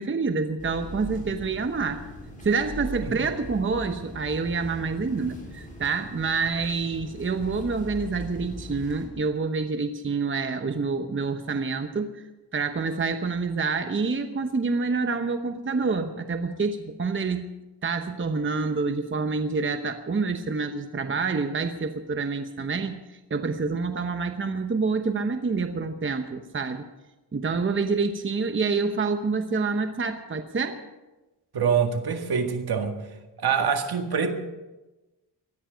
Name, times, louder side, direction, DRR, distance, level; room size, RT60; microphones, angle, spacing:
voice 1, 0.0-2.0 2.4-12.2 12.5-17.5 17.8-26.9 27.3-30.8, right 4 dB, 30° right, 7 dB, 1.0 m, -27 dB
sound 1, 0.6-9.1, equal, 20° left, 6.3 m, -40 dB
voice 2, 31.5-33.0 33.4-34.3, right 6 dB, 65° right, 5 dB, 2.0 m, -25 dB
19.0 x 13.0 x 5.1 m, 1.1 s
cardioid pair, 95°, 41 cm